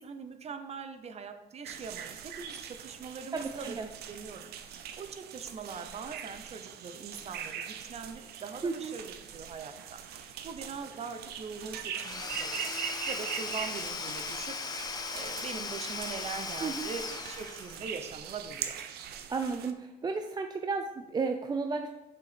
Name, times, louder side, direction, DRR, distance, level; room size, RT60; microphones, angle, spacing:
voice 1, 0.0-3.8 4.1-14.6 15.1-18.8, right 5 dB, 40° right, 8 dB, 0.8 m, -42 dB
sound 1, 1.6-19.7, right 9 dB, 70° right, 0.7 m, -42 dB
voice 2, 3.3-3.9 8.6-8.9 16.6-16.9 19.3-21.9, right 4 dB, 25° right, 6 dB, 0.5 m, -33 dB
Domestic sounds home sounds / Tools, 11.9-18.1, left 4 dB, 25° left, 0.7 m, -38 dB
6.7 x 5.0 x 5.1 m, 0.97 s
cardioid pair, 110°, 17 cm